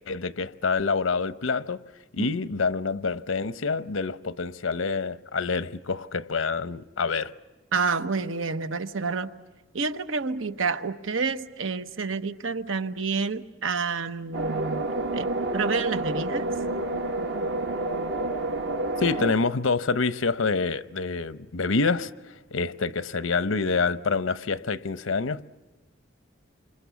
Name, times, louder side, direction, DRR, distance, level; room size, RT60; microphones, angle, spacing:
voice 1, 0.1-1.8 2.1-7.3 19.0-22.1 22.5-25.5, left 4 dB, 90° left, 0.8 m, -27 dB
voice 2, 7.7-9.4 9.7-14.9 15.1-16.5, right 4 dB, 85° right, 1.1 m, -29 dB
sound 1, 14.3-19.3, right 2 dB, 60° right, 1.4 m, -29 dB
28.5 x 26.5 x 7.1 m
head